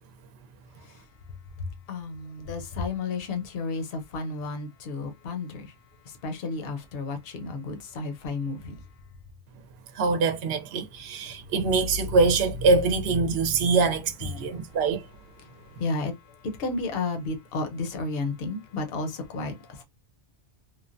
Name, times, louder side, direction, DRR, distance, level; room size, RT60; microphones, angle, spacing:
voice 1, 1.9-5.7 6.2-8.7 15.8-16.1 16.6-19.8, left 3 dB, 60° left, 0.9 m, -32 dB
voice 2, 10.0-15.0, right 3 dB, 65° right, 0.8 m, -24 dB
3.1 x 2.1 x 2.5 m
omnidirectional pair, 1.2 m